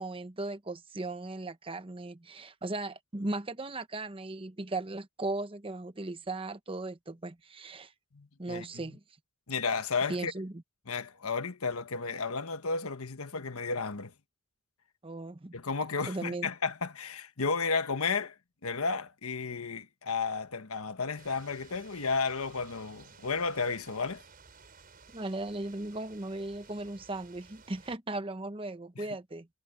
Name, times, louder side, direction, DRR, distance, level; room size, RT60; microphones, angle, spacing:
voice 1, 0.0-7.9 8.4-9.0 10.1-10.5 15.0-15.5 16.1-16.5 25.1-29.5, right 2 dB, 25° right, 0.9 m, -37 dB
voice 2, 8.1-8.8 9.5-10.3 10.9-14.1 15.5-18.3 18.6-24.2 29.0-29.1, left 4 dB, 80° left, 1.3 m, -33 dB
sound 1, 21.2-28.0, right 5 dB, 40° right, 5.7 m, -56 dB
head